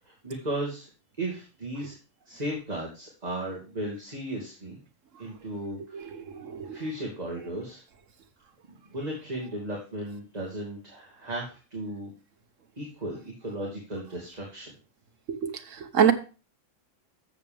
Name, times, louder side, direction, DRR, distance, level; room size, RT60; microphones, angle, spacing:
voice 1, 0.1-0.9 1.2-1.9 2.3-4.8 5.2-6.1 6.6-7.8 8.9-12.1 12.8-14.7, right 1 dB, 30° right, 2.5 m, -35 dB
voice 2, 5.9-6.8 15.3-16.1, right 8 dB, 80° right, 1.5 m, -26 dB
13.0 x 7.3 x 3.5 m
omnidirectional pair, 1.3 m